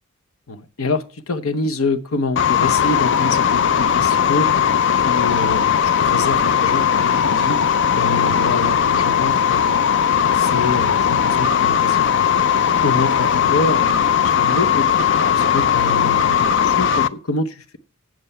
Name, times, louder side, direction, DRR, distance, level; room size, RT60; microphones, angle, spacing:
voice 1, 0.5-4.6 4.9-9.8 10.3-14.9 15.3-17.8, left 3 dB, 80° left, 0.9 m, -26 dB
sound 1, 2.4-17.1, left 8 dB, 55° left, 0.4 m, -18 dB
7.7 x 7.6 x 5.4 m
head